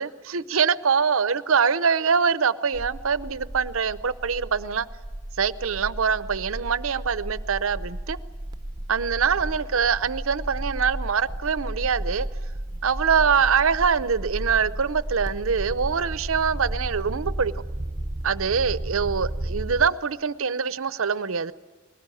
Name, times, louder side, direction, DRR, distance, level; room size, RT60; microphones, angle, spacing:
voice 1, 0.0-4.9 5.4-8.2 8.9-12.3 12.8-17.5 18.2-21.5, right 6 dB, 75° right, 0.7 m, -24 dB
sound 1, 2.7-19.9, right 1 dB, 20° right, 0.8 m, -33 dB
21.5 x 19.0 x 9.9 m
head